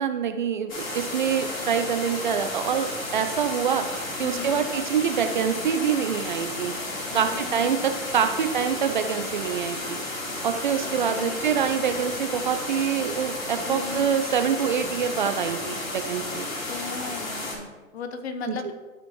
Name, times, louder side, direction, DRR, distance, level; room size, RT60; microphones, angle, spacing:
voice 1, 0.0-3.9 4.2-6.8 7.1-10.0 10.4-16.5 18.5-18.7, right 7 dB, 35° right, 7 dB, 0.4 m, -26 dB
sound 1, 0.7-17.6, left 2 dB, 70° left, 2.7 m, -33 dB
voice 2, 4.2-4.7 7.1-7.9 8.2-8.3 10.8-11.4 13.7-14.1 16.7-18.7, left 5 dB, 50° left, 8 dB, 1.0 m, -37 dB
13.0 x 5.0 x 3.0 m, 1.3 s
hypercardioid pair, 130°, 42 cm